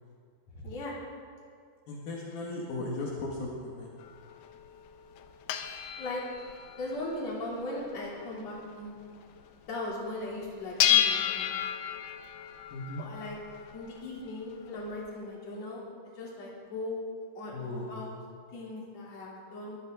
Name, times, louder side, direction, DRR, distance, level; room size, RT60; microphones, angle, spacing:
voice 1, 0.6-1.0 6.0-6.2 6.8-8.9 9.7-11.5 13.0-13.4 13.7-15.8 16.2-17.0 17.3-18.1 18.5-19.8, left 2 dB, 45° left, -4 dB, 4.3 m, -38 dB
voice 2, 1.9-3.9 12.7-13.0 17.5-18.1, left 2 dB, 75° left, -4 dB, 3.7 m, -37 dB
sound 1, 4.0-9.5 9.8-9.9 10.2-15.1, left 11 dB, 90° left, 2.9 m, -32 dB
23.0 x 15.5 x 3.8 m, 2.2 s
omnidirectional pair, 4.4 m